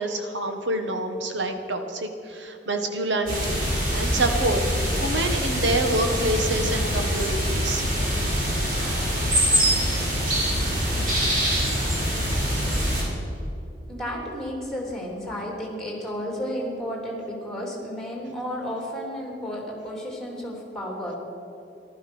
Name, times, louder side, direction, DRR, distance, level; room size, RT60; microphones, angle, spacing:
voice 1, 0.0-3.6 3.9-4.6 5.0-7.8, right 1 dB, 80° right, 5 dB, 1.6 m, -27 dB
sound 1, 3.3-13.0, equal, 50° right, 4.6 m, -24 dB
voice 2, 13.9-21.2, equal, 5° left, -2 dB, 3.3 m, -32 dB
15.0 x 12.5 x 6.3 m, 2.8 s
head